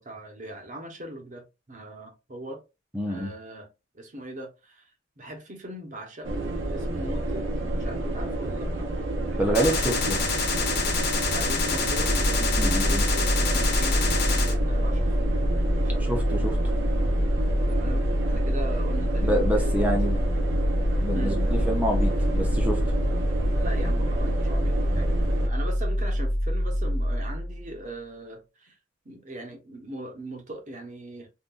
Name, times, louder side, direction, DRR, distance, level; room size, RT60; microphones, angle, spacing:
voice 1, 0.0-2.6 3.0-3.7 3.9-4.9 5.2-8.9 9.2-10.5 11.3-15.5 15.7-16.2 17.7-20.0 21.1-21.4 23.6-25.1 25.4-28.8 29.0-31.3, right 1 dB, 40° right, 1.0 m, -40 dB
voice 2, 2.9-3.3 9.4-10.2 12.6-13.0 16.0-16.6 19.2-20.2 21.0-22.8, equal, 10° right, 0.7 m, -27 dB
sound 1, 6.2-25.5, right 1 dB, 85° right, 0.7 m, -29 dB
Gunshot gunfire, 9.5-14.5, left 4 dB, 55° left, 1.0 m, -27 dB
sound 2, 12.0-27.8, equal, 25° left, 1.1 m, -26 dB
3.8 x 2.5 x 2.4 m
head